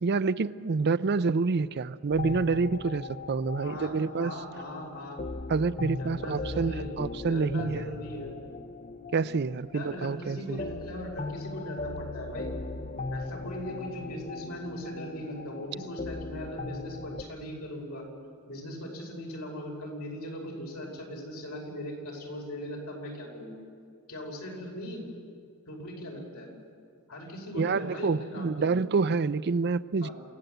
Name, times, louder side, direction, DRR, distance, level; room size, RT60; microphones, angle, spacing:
voice 1, 0.0-4.3 5.5-7.9 9.1-10.6 27.6-30.1, right 4 dB, 50° right, 15 dB, 0.5 m, -28 dB
sound 1, 2.1-17.2, left 3 dB, 35° left, 0.7 m, -39 dB
voice 2, 3.6-5.2 5.9-6.9 7.3-8.3 9.7-12.5 13.1-18.1 18.5-23.6 24.1-25.1 25.7-26.5 27.1-28.8 30.0-30.1, left 1 dB, 80° left, 0 dB, 5.7 m, -39 dB
28.0 x 16.0 x 8.0 m, 2.2 s
head